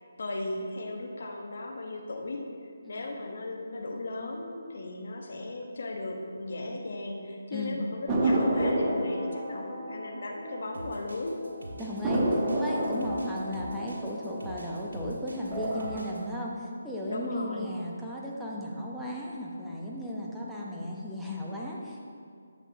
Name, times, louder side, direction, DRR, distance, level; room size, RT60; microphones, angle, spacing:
voice 1, 0.2-11.4 12.7-13.1 17.1-17.8, left 2 dB, 60° left, 2 dB, 1.1 m, -36 dB
voice 2, 7.5-7.8 11.8-22.1, left 1 dB, ahead, -6 dB, 0.9 m, -35 dB
sound 1, 8.1-11.1 11.4-11.5 12.0-15.0 15.4-16.0, right 1 dB, 20° right, 1.1 m, -30 dB
sound 2, 10.7-16.2, right 1 dB, 70° right, 1.8 m, -45 dB
10.5 x 7.3 x 2.8 m, 2.3 s
figure-of-eight pair, 150°, 0 cm